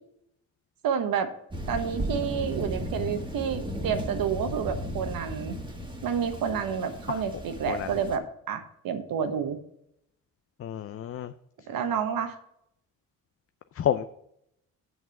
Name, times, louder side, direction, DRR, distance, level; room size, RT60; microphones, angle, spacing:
voice 1, 0.8-1.3 1.7-5.5 6.0-9.6 11.7-12.3, right 7 dB, 75° right, 8 dB, 1.2 m, -29 dB
Thunder, 1.5-8.2, equal, 15° right, 1.7 m, -35 dB
voice 2, 10.6-11.3 13.8-14.0, left 10 dB, 40° left, 10 dB, 0.5 m, -29 dB
7.2 x 5.9 x 7.1 m, 0.76 s
cardioid pair, 80°, 35 cm